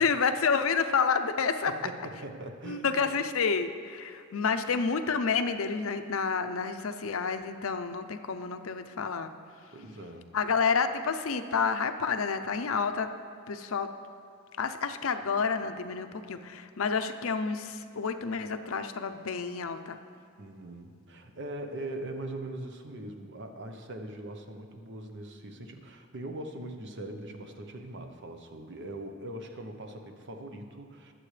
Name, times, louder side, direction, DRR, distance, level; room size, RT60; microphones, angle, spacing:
voice 1, 0.0-1.7 2.6-9.3 10.3-13.1 13.5-13.9 14.6-20.0, left 5 dB, 70° left, 8 dB, 0.6 m, -29 dB
voice 2, 1.7-3.0 9.7-10.3 20.4-31.1, right 1 dB, 55° right, 5 dB, 0.9 m, -41 dB
20.5 x 7.7 x 3.3 m, 2.2 s
head